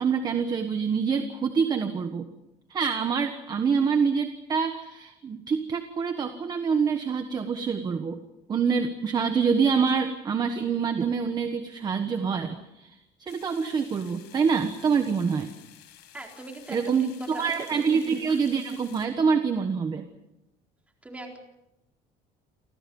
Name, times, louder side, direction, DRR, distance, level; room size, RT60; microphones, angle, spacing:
voice 1, 0.0-2.3 2.7-8.2 8.5-15.5 16.7-20.0, right 6 dB, 25° right, 8 dB, 1.3 m, -26 dB
sound 1, 13.3-19.1, left 12 dB, 85° left, 5.3 m, -52 dB
voice 2, 16.1-17.9 21.0-21.4, right 2 dB, 10° right, 1 dB, 4.1 m, -41 dB
30.0 x 25.0 x 5.5 m, 0.89 s
cardioid pair, 180°, 17 cm